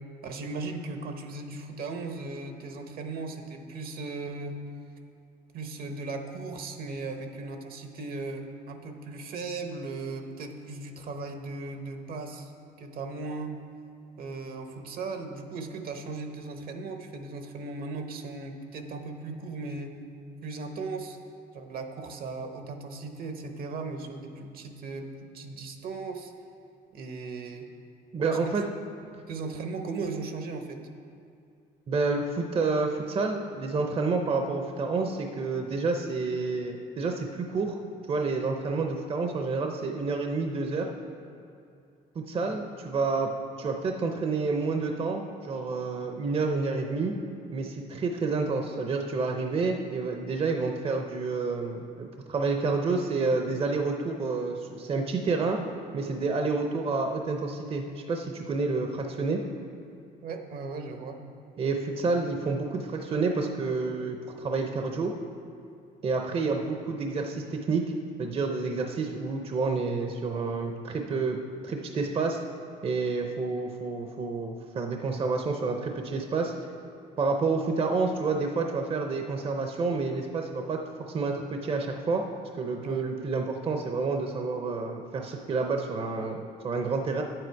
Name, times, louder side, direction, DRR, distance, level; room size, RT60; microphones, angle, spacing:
voice 1, 0.2-4.7 5.5-12.5 12.8-13.6 14.2-20.0 20.4-21.2 21.5-25.1 25.3-26.3 26.9-27.7 28.2-28.6 29.2-30.9 42.4-42.6 60.2-61.3 82.8-83.1, right 3 dB, 60° right, 6 dB, 0.9 m, -37 dB
voice 2, 28.1-28.6 31.9-37.8 38.1-40.9 42.1-43.3 43.6-47.1 47.5-55.6 55.9-59.4 61.6-65.1 66.0-67.8 68.2-71.4 71.6-72.4 72.8-76.5 77.2-80.8 81.1-82.2 82.5-87.2, right 4 dB, 35° right, 4 dB, 0.7 m, -29 dB
9.2 x 7.9 x 4.6 m, 2.5 s
cardioid pair, 110°, 17 cm